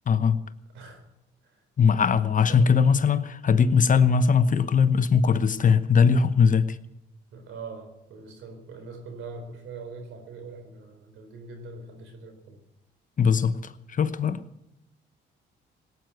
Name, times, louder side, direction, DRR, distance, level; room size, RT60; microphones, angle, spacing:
voice 1, 0.1-0.4 1.8-6.8 13.2-14.4, left 6 dB, 40° left, 1.0 m, -20 dB
voice 2, 0.7-1.0 1.4-1.6 2.4-2.9 7.3-12.6 14.3-14.4, right 3 dB, 85° right, 4.1 m, -42 dB
18.0 x 9.3 x 8.0 m
cardioid pair, 90°, 20 cm